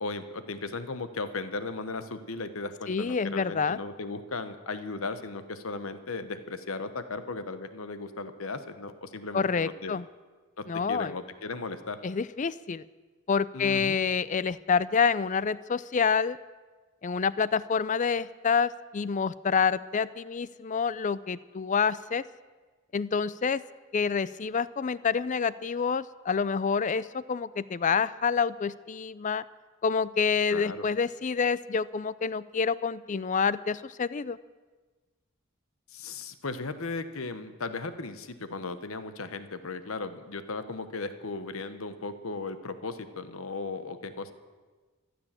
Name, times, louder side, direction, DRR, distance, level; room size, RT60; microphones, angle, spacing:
voice 1, 0.0-9.9 10.6-12.0 13.5-14.0 30.5-30.8 35.9-44.3, left 3 dB, 75° left, 11 dB, 1.1 m, -36 dB
voice 2, 2.9-3.8 9.3-10.1 10.7-11.1 12.0-12.8 13.3-16.4 17.0-22.2 22.9-23.6 23.9-29.4 29.8-34.4, left 5 dB, 35° left, 18 dB, 0.4 m, -27 dB
14.5 x 12.5 x 7.5 m, 1.3 s
head